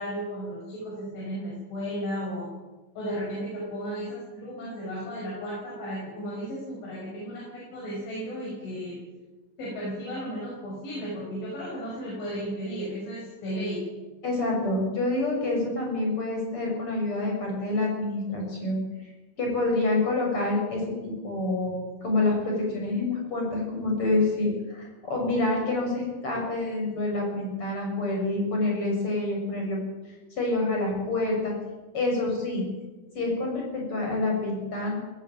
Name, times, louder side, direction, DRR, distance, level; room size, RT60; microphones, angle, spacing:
voice 1, 0.0-2.5 3.0-9.0 9.6-13.8, equal, 75° left, -5 dB, 8.5 m, -34 dB
voice 2, 14.2-18.8 19.4-21.7 22.0-29.8 30.4-31.5 31.9-32.6 33.1-34.9, left 2 dB, 25° left, 0 dB, 7.2 m, -27 dB
19.5 x 15.5 x 9.1 m, 1.2 s
omnidirectional pair, 5.5 m